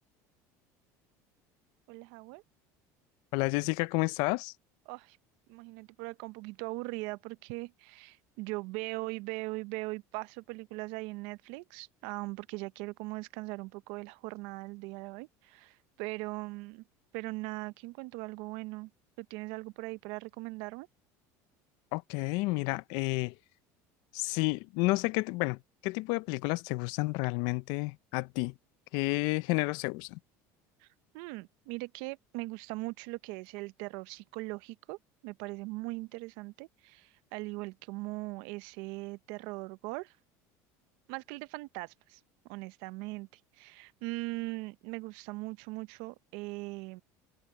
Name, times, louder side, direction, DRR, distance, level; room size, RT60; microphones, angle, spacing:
voice 1, 1.9-2.4 4.9-5.2 5.5-16.8 17.1-18.9 19.2-20.9 31.1-35.0 35.2-40.1 41.1-42.2 42.5-43.3 43.6-47.0, right 23 dB, 75° right, 0.6 m, -40 dB
voice 2, 3.3-4.5 21.9-23.3 24.1-28.5 28.9-30.2, left 24 dB, 70° left, 0.5 m, -31 dB
cardioid pair, 145°, 8 cm